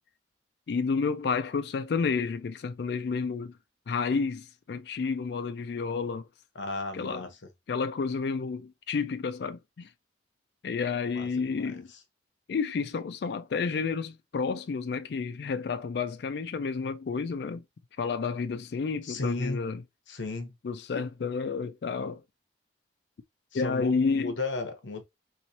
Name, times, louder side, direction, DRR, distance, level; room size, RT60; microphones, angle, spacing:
voice 1, 0.7-3.6 3.9-6.3 6.9-7.3 7.7-9.9 10.6-11.9 12.5-17.6 18.0-19.8 20.6-22.2 23.5-24.3, left 5 dB, 60° left, 0.3 m, -30 dB
voice 2, 6.5-7.3 11.1-11.8 19.0-19.6 20.1-20.5 23.5-25.0, left 3 dB, 80° left, 0.8 m, -34 dB
3.1 x 3.0 x 2.7 m
head